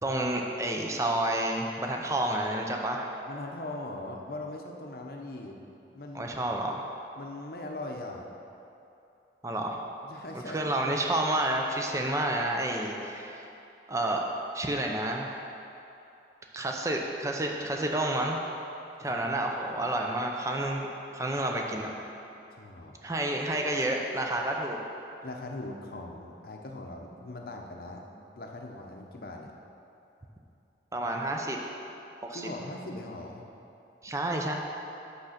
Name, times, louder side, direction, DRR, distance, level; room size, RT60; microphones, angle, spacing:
voice 1, 0.0-3.1 6.1-6.8 9.4-9.8 10.3-13.5 13.9-14.2 14.5-15.4 16.5-18.4 19.0-21.9 23.0-24.8 30.9-31.6 32.2-32.5 34.0-34.5, right 1 dB, 15° right, 1 dB, 0.6 m, -30 dB
voice 2, 3.3-5.6 5.9-6.3 7.2-8.3 10.0-10.9 19.1-19.5 22.6-23.0 25.2-28.1 28.3-29.5 32.3-33.4, left 2 dB, 55° left, 1 dB, 0.7 m, -40 dB
6.3 x 5.7 x 5.8 m, 2.8 s
head